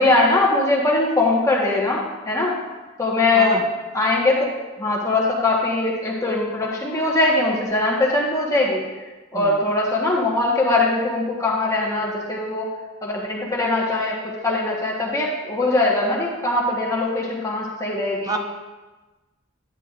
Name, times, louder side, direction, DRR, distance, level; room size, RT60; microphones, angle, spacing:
voice 1, 0.0-2.5 3.0-3.6 3.9-4.5 4.8-8.8 9.3-12.7 13.0-14.2 14.4-18.4, left 2 dB, 15° left, -3 dB, 1.2 m, -21 dB
voice 2, 3.3-3.6 9.3-9.6 18.3-18.4, right 3 dB, 20° right, 5 dB, 0.5 m, -28 dB
10.5 x 8.8 x 2.5 m, 1.2 s
head